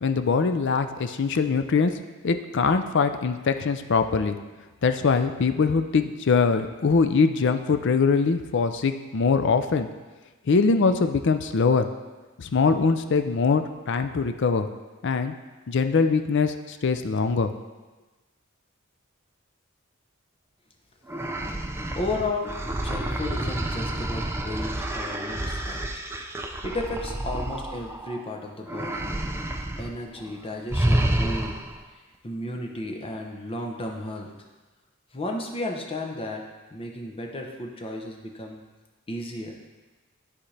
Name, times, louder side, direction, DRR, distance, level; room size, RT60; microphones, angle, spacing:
voice 1, 0.0-1.9 2.2-4.4 4.8-9.9 10.5-11.9 12.4-14.7 15.0-15.3 15.7-17.5, left 4 dB, 60° left, 8 dB, 0.5 m, -22 dB
sound 1, 21.1-28.2 28.7-29.9 30.2-30.3 30.7-31.8, right 1 dB, 10° right, 0.5 m, -29 dB
voice 2, 21.9-25.8 26.6-29.0 29.8-31.6 32.2-34.3 35.1-36.4 36.7-38.6 39.1-39.5, left 2 dB, 25° left, 1 dB, 0.8 m, -33 dB
13.0 x 4.3 x 3.3 m, 1.2 s
head